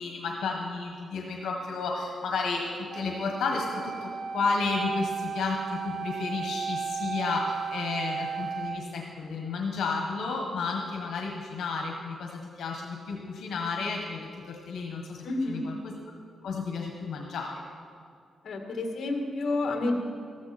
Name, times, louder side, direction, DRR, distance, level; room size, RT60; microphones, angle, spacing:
voice 1, 0.0-15.9 16.4-17.5, left 4 dB, 85° left, 1 dB, 1.4 m, -32 dB
Wind instrument woodwind instrument, 2.9-8.8, right 6 dB, 50° right, 0.6 m, -34 dB
voice 2, 15.2-15.7 18.4-20.0, left 2 dB, 60° left, 3 dB, 1.7 m, -29 dB
14.0 x 13.0 x 4.3 m, 2.3 s
wide cardioid pair, 130°, 0 cm